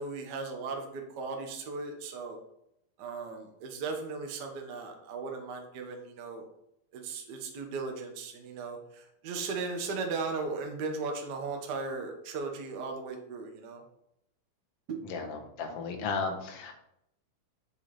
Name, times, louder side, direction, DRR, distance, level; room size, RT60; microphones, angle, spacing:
voice 1, 0.0-2.4 3.0-6.5 6.9-13.8 14.9-15.0, right 4 dB, 60° right, 3 dB, 1.0 m, -37 dB
voice 2, 15.0-16.7, left 4 dB, 55° left, 4 dB, 1.9 m, -34 dB
7.7 x 6.6 x 4.3 m, 0.79 s
omnidirectional pair, 4.0 m